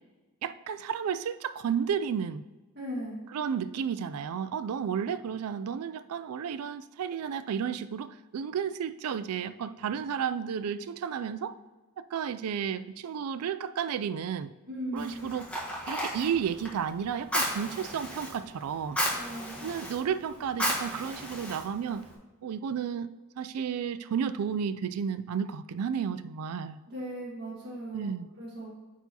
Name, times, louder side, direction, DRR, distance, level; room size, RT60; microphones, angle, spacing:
voice 1, 0.4-2.4 3.3-11.6 12.0-14.5 14.9-15.5 15.9-19.0 19.6-22.1 22.4-23.1 23.4-26.8 27.9-28.3, right 7 dB, 75° right, 14 dB, 0.3 m, -32 dB
voice 2, 2.7-3.2 14.7-15.2 19.1-19.7 26.9-28.7, right 1 dB, 50° right, -6 dB, 1.7 m, -38 dB
Fire, 15.0-22.1, equal, 5° left, 1.3 m, -35 dB
9.1 x 4.8 x 2.8 m, 1.2 s
head